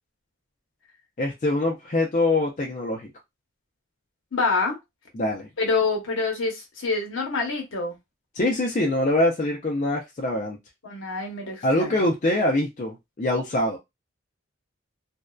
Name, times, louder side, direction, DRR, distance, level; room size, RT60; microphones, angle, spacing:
voice 1, 1.2-3.1 5.1-5.5 8.3-10.6 11.6-13.8, left 1 dB, 35° left, 0.4 m, -24 dB
voice 2, 4.3-4.8 5.6-7.9 10.8-12.0, left 4 dB, 65° left, 0.8 m, -26 dB
2.6 x 2.1 x 2.3 m
head